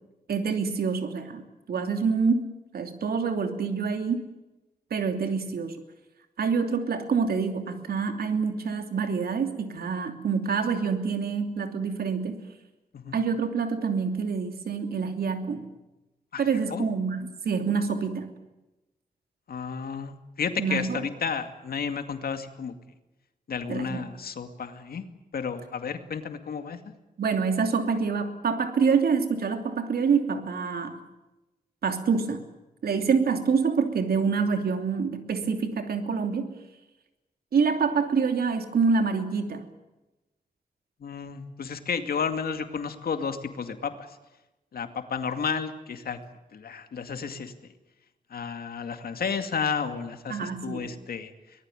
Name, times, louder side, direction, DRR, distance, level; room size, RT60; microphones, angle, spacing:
voice 1, 0.3-1.4 1.7-2.5 2.7-4.3 4.9-5.8 6.4-12.4 13.1-15.6 16.4-18.3 20.6-21.0 23.7-24.0 27.2-30.9 31.8-32.4 32.8-36.5 37.5-39.7 50.3-50.9, right 5 dB, 85° right, 6 dB, 2.9 m, -26 dB
voice 2, 19.5-22.7 23.5-25.0 25.3-26.8 41.0-44.1 44.7-46.2 46.5-47.7 48.3-51.3, left 6 dB, 80° left, 7 dB, 2.3 m, -32 dB
24.5 x 19.5 x 9.1 m, 1.0 s
cardioid pair, 75°, 15 cm